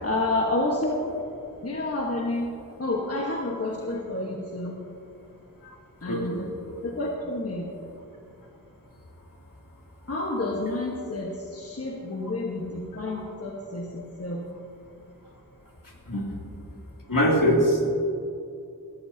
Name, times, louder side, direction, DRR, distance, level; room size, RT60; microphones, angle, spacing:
voice 1, 0.0-1.1 1.6-2.5 2.8-4.7 6.0-6.5 6.8-7.6 10.1-14.4, left 2 dB, 40° left, -1 dB, 1.4 m, -29 dB
voice 2, 6.1-6.4 16.1-16.2 17.1-17.9, equal, 65° left, -3 dB, 2.9 m, -22 dB
19.5 x 13.5 x 2.8 m, 2.6 s
wide cardioid pair, 70°, 35 cm